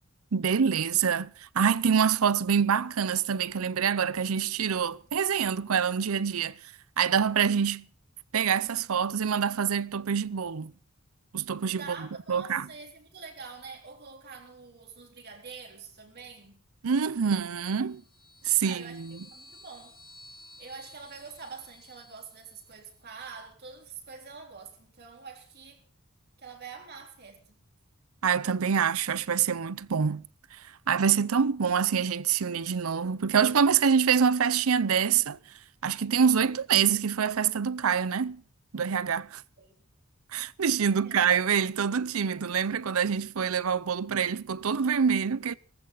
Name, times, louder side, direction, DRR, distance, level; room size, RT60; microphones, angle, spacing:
voice 1, 0.3-6.6 7.0-7.9 8.3-10.7 11.3-12.7 16.8-18.0 18.4-19.2 28.2-30.2 30.5-35.4 35.8-38.4 38.7-39.4 40.3-45.5, right 7 dB, 80° right, 0.6 m, -26 dB
voice 2, 11.7-16.6 18.6-19.0 19.3-20.0 20.6-25.8 26.4-27.6 39.6-39.8 40.9-41.1, right 5 dB, 50° right, 3.8 m, -45 dB
sound 1, 17.4-22.9, left 1 dB, 25° left, 4.0 m, -54 dB
19.0 x 15.0 x 3.9 m
head